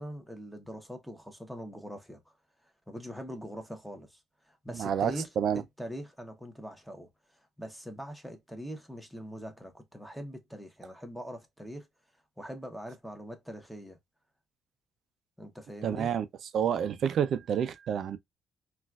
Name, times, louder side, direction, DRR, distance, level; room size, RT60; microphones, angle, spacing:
voice 1, 0.0-2.3 2.9-4.2 4.5-5.3 5.5-11.9 12.4-14.0 15.4-16.1, equal, ahead, 1.1 m, -42 dB
voice 2, 4.7-5.6 15.8-16.3 16.5-18.2, right 8 dB, 65° right, 0.4 m, -29 dB
4.0 x 2.4 x 2.3 m
cardioid pair, 90°, 0 cm